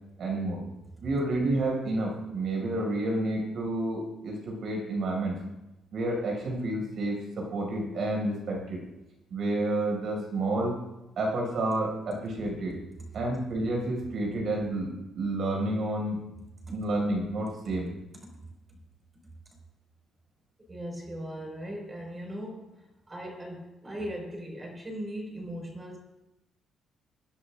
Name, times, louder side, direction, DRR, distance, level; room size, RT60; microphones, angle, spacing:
voice 1, 0.2-0.6 1.0-5.4 5.9-8.8 9.3-10.8 11.2-12.8 13.1-16.2 16.7-17.9, right 2 dB, 65° right, 0 dB, 5.9 m, -30 dB
voice 2, 20.7-22.6 23.1-26.0, equal, 20° right, 1 dB, 5.2 m, -38 dB
26.0 x 10.5 x 2.5 m, 0.95 s
cardioid pair, 90°, 0 cm